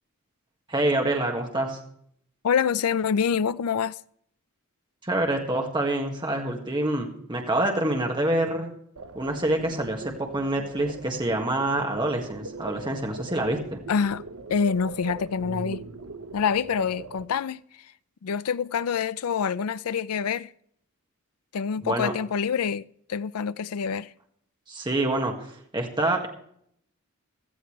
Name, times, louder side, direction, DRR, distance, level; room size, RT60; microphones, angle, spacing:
voice 1, 0.7-1.8 5.0-8.7 9.2-13.8 21.8-22.1 24.7-25.3 25.7-26.3, right 1 dB, 20° right, 1.8 m, -26 dB
voice 2, 2.4-4.0 13.9-14.2 14.5-15.8 16.3-17.6 18.2-20.5 21.5-22.8 23.1-24.1, left 6 dB, 85° left, 0.4 m, -26 dB
sound 1, 9.0-17.3, right 3 dB, 80° right, 0.9 m, -40 dB
16.0 x 13.5 x 3.3 m
head